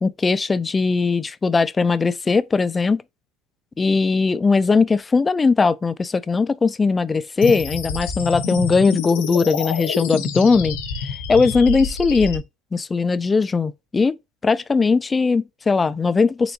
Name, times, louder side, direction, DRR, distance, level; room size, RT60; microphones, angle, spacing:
voice 1, 0.0-3.0 3.8-10.8 11.3-12.4 12.7-14.2 14.4-16.5, left 4 dB, 20° left, 0.3 m, -19 dB
sound 1, 7.4-12.4, left 5 dB, 80° left, 1.0 m, -28 dB
4.3 x 3.7 x 2.6 m
supercardioid pair, 100°, 0 cm